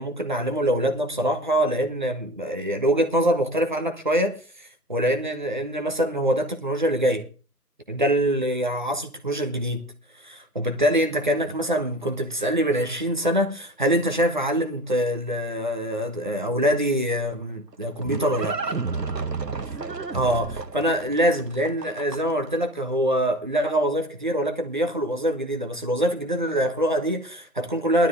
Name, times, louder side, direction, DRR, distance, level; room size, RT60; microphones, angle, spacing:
voice 1, 0.0-7.3 7.9-9.9 10.2-18.6 20.1-28.1, equal, 30° right, 1.2 m, -24 dB
Livestock farm animals working animals, 17.4-22.5, right 4 dB, 80° right, 1.2 m, -31 dB
18.5 x 12.0 x 3.6 m
figure-of-eight pair, 160°, 49 cm